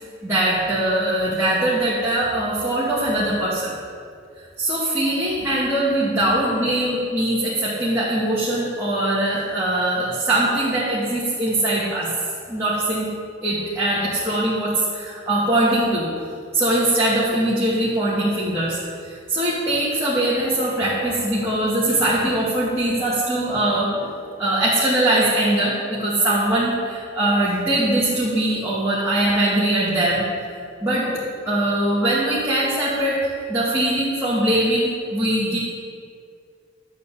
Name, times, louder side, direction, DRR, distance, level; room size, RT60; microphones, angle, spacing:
voice 1, 0.2-3.7 4.6-12.1 12.5-13.1 13.4-16.1 16.5-30.3 30.8-35.6, right 1 dB, 15° right, -10 dB, 2.2 m, -21 dB
13.0 x 5.1 x 8.3 m, 2.3 s
head